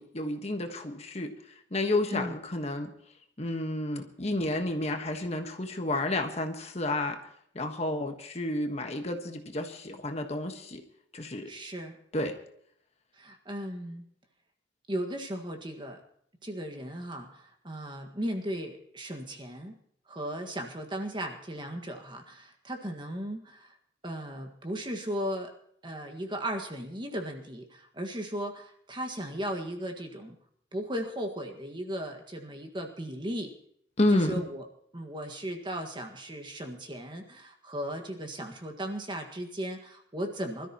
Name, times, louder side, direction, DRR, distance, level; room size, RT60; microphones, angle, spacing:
voice 1, 0.0-1.3 1.7-2.9 3.4-7.2 7.5-10.8 11.1-11.5 12.1-12.4 34.0-34.4, left 1 dB, 35° left, 5 dB, 1.4 m, -30 dB
voice 2, 11.5-12.0 13.1-14.1 14.9-16.0 16.4-19.7 20.1-23.7 24.0-25.5 25.8-30.3 30.7-33.5 34.1-34.7 34.9-40.7, equal, 25° right, 4 dB, 1.7 m, -36 dB
25.0 x 13.5 x 3.0 m, 0.68 s
head